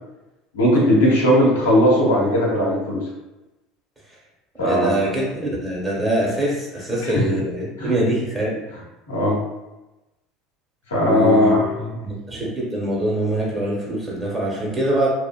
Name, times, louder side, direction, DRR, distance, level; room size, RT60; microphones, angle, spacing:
voice 1, 0.5-3.0 4.6-5.0 7.0-7.1 7.8-7.9 9.1-9.4 10.9-12.0, equal, 85° left, -5 dB, 0.9 m, -18 dB
voice 2, 4.6-8.6 11.0-11.5 12.0-15.1, right 1 dB, 20° right, -5 dB, 1.2 m, -23 dB
2.6 x 2.4 x 2.2 m, 1.0 s
hypercardioid pair, 70°, 0 cm